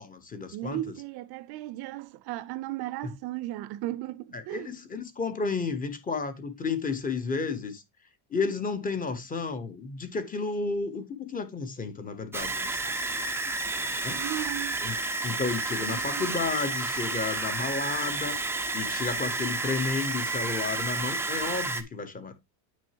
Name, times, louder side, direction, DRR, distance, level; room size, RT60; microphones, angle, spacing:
voice 1, 0.0-0.9 3.0-3.1 4.3-7.8 8.3-13.2 14.0-14.2 14.8-15.0 15.2-18.4 18.7-22.4, left 4 dB, 15° left, 0.9 m, -32 dB
voice 2, 0.5-4.7 14.1-14.8 15.9-16.4, right 15 dB, 55° right, 0.6 m, -36 dB
sound 1, 12.3-21.8, right 3 dB, 5° right, 0.4 m, -31 dB
9.0 x 6.2 x 2.8 m
cardioid pair, 165°, 47 cm